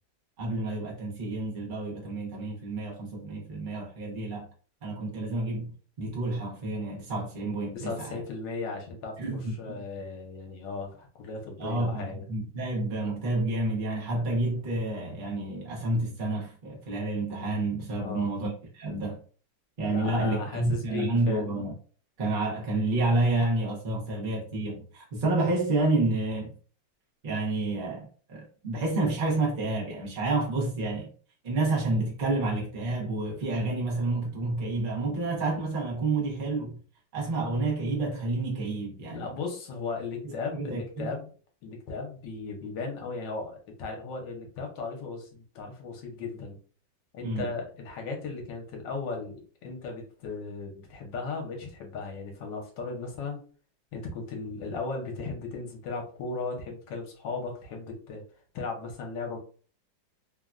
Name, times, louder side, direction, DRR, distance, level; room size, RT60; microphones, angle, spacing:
voice 1, 0.4-4.5 4.8-8.2 9.2-9.8 11.6-19.2 19.8-21.7 22.2-26.5 27.2-31.1 31.4-36.8 37.1-39.3 40.2-41.1 47.2-47.4, right 2 dB, 80° right, 0.4 m, -29 dB
voice 2, 7.7-9.2 9.6-12.2 18.0-18.3 19.9-21.5 39.1-41.3 41.6-46.6 47.1-53.4 53.9-58.2 58.5-59.4, left 4 dB, 70° left, 1.4 m, -36 dB
3.4 x 2.2 x 2.4 m
omnidirectional pair, 2.2 m